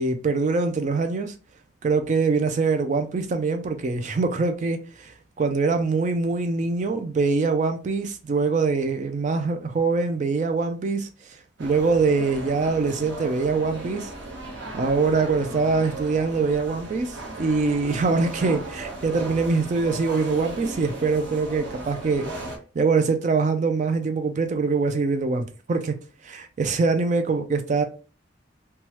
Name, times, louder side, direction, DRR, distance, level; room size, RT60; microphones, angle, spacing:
voice 1, 0.0-1.3 1.8-11.1 11.6-14.1 14.7-22.3 22.8-25.9 26.2-27.8, right 4 dB, 40° right, 0.3 m, -23 dB
sound 1, 11.6-22.6, right 2 dB, 75° right, 0.9 m, -36 dB
3.1 x 2.2 x 2.8 m
head